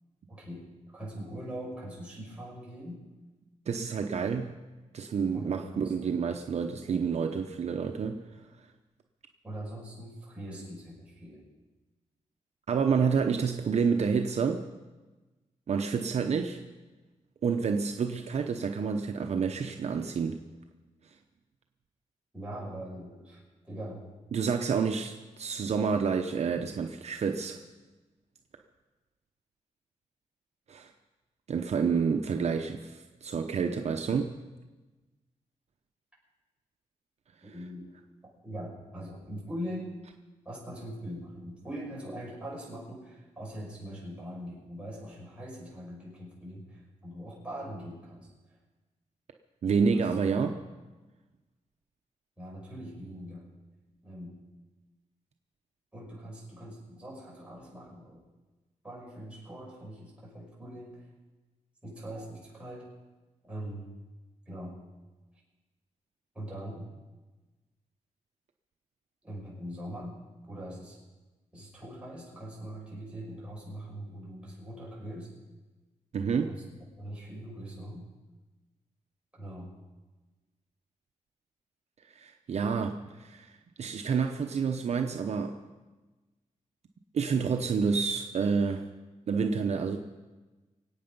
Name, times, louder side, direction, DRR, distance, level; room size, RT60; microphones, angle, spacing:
voice 1, 0.3-3.0 5.3-6.2 9.4-11.5 22.3-24.1 37.4-37.9 38.4-39.9 40.4-48.6 49.8-50.5 52.4-53.5 54.0-54.4 55.9-58.2 58.8-61.1 61.8-62.9 63.4-63.9 64.5-64.8 66.3-66.9 69.2-70.2 70.5-71.0 71.5-75.3 76.3-76.6 77.0-78.1 79.3-79.7, equal, 10° right, -4 dB, 6.1 m, -42 dB
voice 2, 3.7-4.5 4.9-8.2 12.7-14.6 15.7-16.6 17.4-20.4 24.3-27.6 30.7-30.9 31.5-34.3 49.6-50.5 76.1-76.5 82.1-85.5 87.1-88.8 89.3-90.0, right 5 dB, 60° right, 4 dB, 0.8 m, -29 dB
24.5 x 8.8 x 5.4 m, 1.2 s
wide cardioid pair, 120°, 12 cm